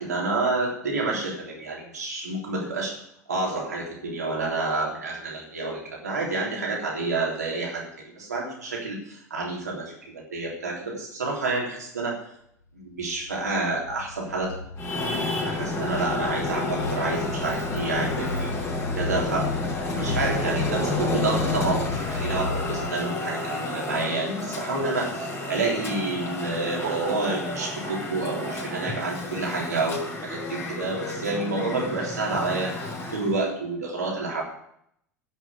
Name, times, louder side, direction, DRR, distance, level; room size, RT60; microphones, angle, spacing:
voice 1, 0.0-3.0 3.3-12.2 12.7-14.6 15.1-18.5 19.0-19.5 19.9-34.4, right 3 dB, 85° right, -2 dB, 3.6 m, -29 dB
sound 1, 13.0-22.9, left 3 dB, 80° left, 0.8 m, -34 dB
Traffic noise roadway noise, 14.8-33.4, left 2 dB, 30° left, 4.1 m, -31 dB
sound 2, 20.4-22.1 26.8-29.1 30.5-30.6, right 6 dB, 70° right, 2.9 m, -37 dB
11.0 x 6.5 x 8.3 m, 0.72 s
hypercardioid pair, 80°, 9 cm